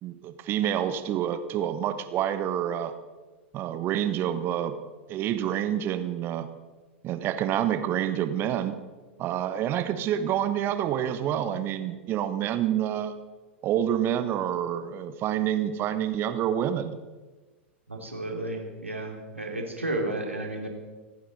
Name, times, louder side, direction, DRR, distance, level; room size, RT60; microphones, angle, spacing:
voice 1, 0.0-2.9 3.5-4.8 5.1-6.5 7.0-8.8 9.2-13.1 13.6-16.9, right 10 dB, 35° right, 10 dB, 1.2 m, -28 dB
voice 2, 17.9-20.7, right 1 dB, 85° right, 1 dB, 2.7 m, -32 dB
26.5 x 9.5 x 4.2 m, 1.3 s
figure-of-eight pair, 90°, 7 cm